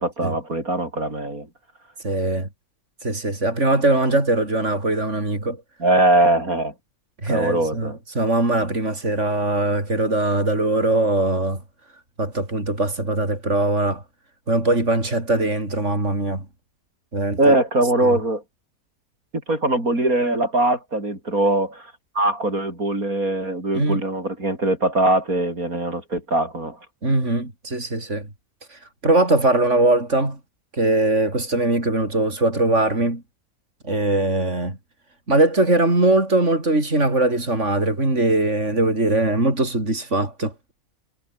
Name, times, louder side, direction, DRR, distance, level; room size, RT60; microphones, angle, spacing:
voice 1, 0.0-1.5 5.8-6.7 7.3-8.0 17.4-18.4 19.5-26.8, right 2 dB, 85° right, 8.1 m, -21 dB
voice 2, 2.0-2.5 3.0-5.6 7.2-11.6 12.2-14.0 14.5-16.4 17.1-17.5 18.0-18.1 23.7-24.0 27.0-28.3 28.7-30.4 30.7-33.2 33.8-34.8 35.3-40.5, right 2 dB, 55° right, 6.4 m, -21 dB
omnidirectional pair, 1.5 m